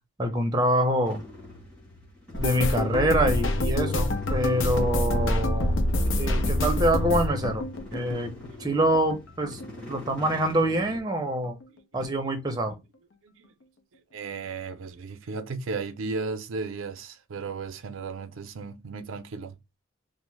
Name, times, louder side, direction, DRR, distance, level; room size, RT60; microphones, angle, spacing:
voice 1, 0.2-1.2 2.3-5.8 6.2-7.7 7.9-8.3 8.6-9.6 9.9-11.6 11.9-12.7, right 1 dB, 20° right, 0.6 m, -25 dB
sound 1, 1.0-11.0, left 1 dB, 5° left, 1.2 m, -45 dB
sound 2, 2.3-9.2 9.4-10.5 10.8-11.1 11.4-11.6, left 1 dB, 75° left, 0.5 m, -27 dB
voice 2, 13.2-13.5 14.1-19.5, right 4 dB, 85° right, 0.4 m, -35 dB
2.9 x 2.0 x 3.2 m
head